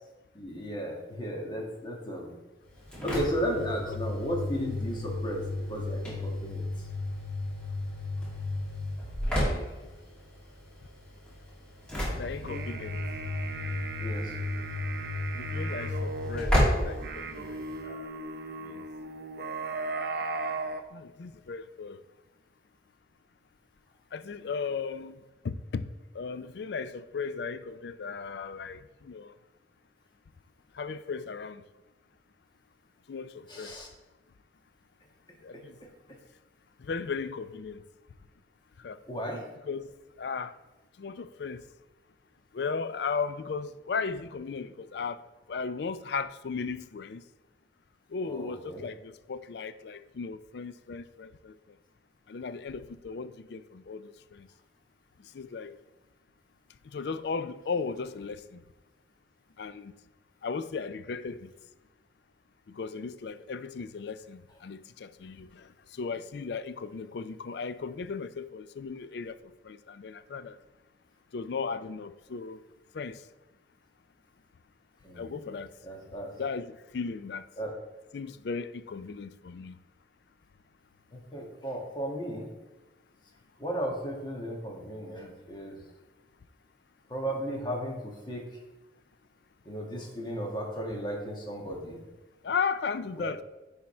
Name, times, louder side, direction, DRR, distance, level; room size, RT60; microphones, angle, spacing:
voice 1, 0.3-2.4 3.0-6.9 14.0-14.3 33.5-33.9 35.5-35.6 39.1-39.5 48.2-48.9 75.0-75.4 75.8-76.3 77.6-77.7 81.1-82.5 83.6-85.8 87.1-88.4 89.6-92.0 93.2-93.3, equal, 25° left, 1.5 m, -35 dB
Engine / Slam, 2.7-17.8, left 1 dB, 5° left, 2.3 m, -33 dB
voice 2, 9.2-9.8 12.2-13.0 15.3-18.1 18.6-18.9 20.9-22.0 24.1-25.8 26.1-29.4 30.7-31.6 33.1-33.8 35.4-35.8 36.8-37.8 38.8-39.0 39.6-39.9 40.2-40.6 41.0-41.6 42.5-45.2 45.5-47.2 48.1-51.6 52.3-54.5 55.2-55.8 56.8-58.6 59.6-59.9 60.4-61.5 62.7-69.4 69.6-70.6 71.3-72.6 72.9-73.2 75.2-75.7 76.4-77.5 78.1-79.8 92.4-93.4, left 5 dB, 60° left, 0.4 m, -36 dB
sound 1, 12.3-20.8, right 3 dB, 55° right, 0.6 m, -37 dB
10.5 x 3.6 x 4.3 m
head